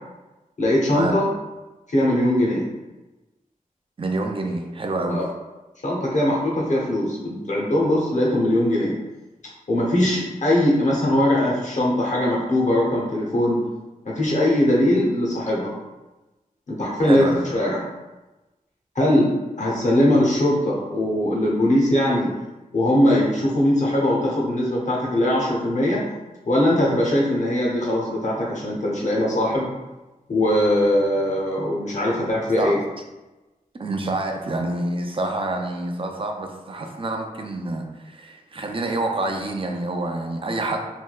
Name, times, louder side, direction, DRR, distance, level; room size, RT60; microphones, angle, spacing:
voice 1, 0.6-1.3 1.9-2.7 5.1-5.3 5.8-9.0 9.7-13.6 14.0-15.7 16.7-17.8 18.9-19.3 19.6-22.3 22.7-26.1 26.4-29.7 30.3-32.8, left 1 dB, 60° left, -3 dB, 0.9 m, -21 dB
voice 2, 4.0-5.2 17.0-17.4 32.6-32.8 33.8-40.9, right 2 dB, 40° right, 3 dB, 0.4 m, -27 dB
3.3 x 2.7 x 2.3 m, 1.1 s
wide cardioid pair, 85°, 14 cm